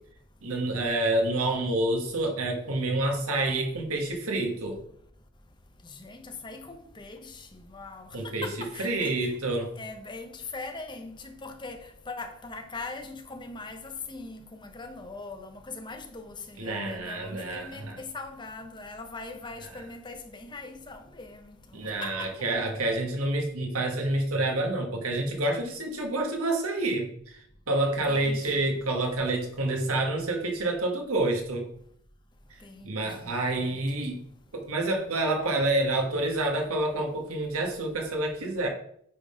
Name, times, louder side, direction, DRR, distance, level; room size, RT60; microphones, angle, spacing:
voice 1, 0.4-4.8 8.1-8.5 8.8-9.7 16.6-18.0 21.7-27.4 27.7-31.7 32.8-34.2 34.5-38.7, right 2 dB, 85° right, 1.5 m, -28 dB
voice 2, 5.8-9.3 9.8-21.5 22.0-22.5 28.1-28.8 32.6-33.8, left 3 dB, 20° left, 0.8 m, -41 dB
8.6 x 3.8 x 5.0 m
head